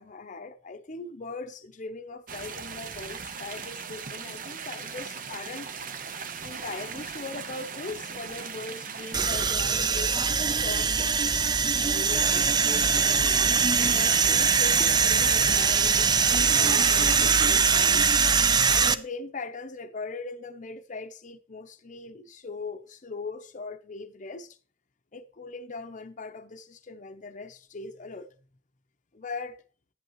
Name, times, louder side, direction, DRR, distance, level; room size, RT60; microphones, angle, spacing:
voice 1, 0.0-5.7 6.4-11.1 11.8-18.0 18.7-24.6 25.1-28.3 29.1-29.6, left 3 dB, 45° left, 0.7 m, -40 dB
sound 1, 2.3-9.5 13.8-17.5, right 6 dB, 50° right, 0.8 m, -38 dB
sound 2, 9.1-18.9, right 5 dB, 25° right, 0.5 m, -22 dB
10.5 x 10.5 x 3.1 m
head